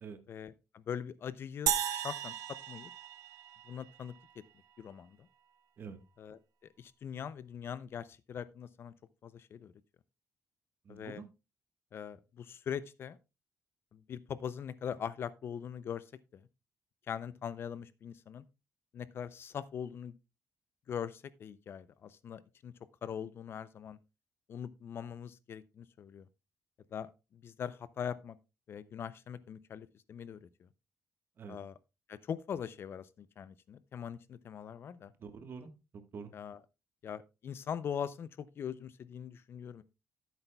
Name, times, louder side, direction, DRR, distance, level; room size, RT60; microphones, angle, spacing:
voice 1, 0.3-2.3 2.7-2.9 3.7-4.1 4.8-5.3 6.2-6.4 6.8-8.9 9.2-9.7 10.9-11.2 11.9-13.2 13.9-16.0 16.3-16.4 17.1-18.4 18.9-20.2 20.9-22.7 23.0-24.0 24.5-26.3 26.9-28.4 28.7-30.7 31.5-31.7 32.1-35.1 36.3-36.6 37.0-39.8, left 8 dB, 45° left, 0.4 m, -42 dB
sound 1, 1.7-4.1, right 10 dB, 85° right, 0.8 m, -35 dB
voice 2, 10.8-11.3 31.4-31.6 35.2-36.3, right 5 dB, 40° right, 1.2 m, -46 dB
14.0 x 8.0 x 2.2 m
cardioid pair, 165°, 6 cm